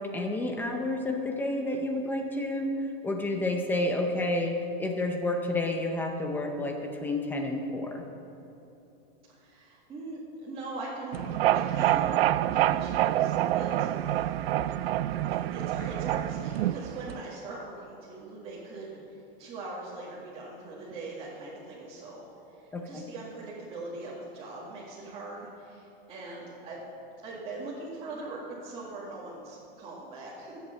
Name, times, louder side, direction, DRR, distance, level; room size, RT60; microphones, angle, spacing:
voice 1, 0.0-2.8 3.0-8.0 22.7-23.0, left 2 dB, 5° left, 3 dB, 0.6 m, -30 dB
voice 2, 9.3-11.3 11.5-12.1 12.5-14.2 15.3-19.0 19.4-22.2 22.5-26.8 27.2-30.6, right 2 dB, 20° right, -7 dB, 2.0 m, -41 dB
sound 1, 11.1-17.2, right 13 dB, 75° right, 0.5 m, -27 dB
14.0 x 8.2 x 6.8 m, 2.9 s
supercardioid pair, 170°, 30 cm